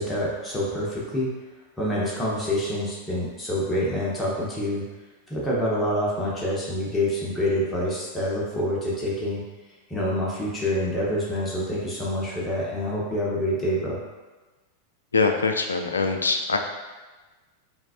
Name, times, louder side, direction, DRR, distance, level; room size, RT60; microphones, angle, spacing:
voice 1, 0.0-1.3 1.8-4.8 5.3-9.4 9.9-14.0, left 1 dB, 15° left, -6 dB, 1.0 m, -26 dB
voice 2, 15.1-16.6, left 4 dB, 80° left, 5 dB, 0.4 m, -23 dB
5.7 x 2.4 x 2.5 m, 1.2 s
figure-of-eight pair, 90°, 0 cm